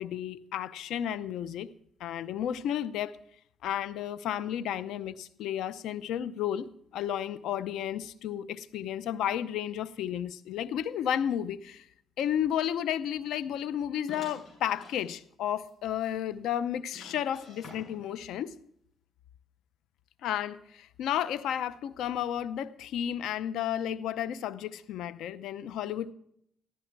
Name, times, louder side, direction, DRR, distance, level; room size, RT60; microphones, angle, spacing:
voice 1, 0.0-1.7 2.0-3.2 3.6-11.8 12.2-18.5 20.2-26.1, left 10 dB, 85° left, 16 dB, 0.7 m, -32 dB
sound 1, 14.1-15.1 15.6-15.7 16.0-16.1 16.9-18.2, left 2 dB, 40° left, 7.8 m, -49 dB
15.0 x 13.5 x 4.6 m, 0.70 s
cardioid pair, 90°, 0 cm